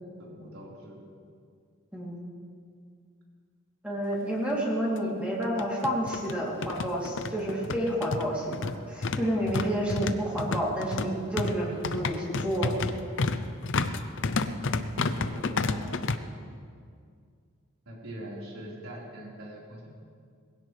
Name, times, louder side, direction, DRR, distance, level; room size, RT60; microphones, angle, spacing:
voice 1, 0.2-1.0 14.4-16.0 17.8-19.9, equal, 70° right, -5 dB, 4.5 m, -41 dB
voice 2, 1.9-2.2 3.8-12.7, right 1 dB, 5° right, -6 dB, 3.1 m, -30 dB
sound 1, 4.1-4.2 4.5-4.6 5.4-16.2, left 3 dB, 55° left, 0.6 m, -31 dB
20.5 x 16.5 x 3.4 m, 2.2 s
head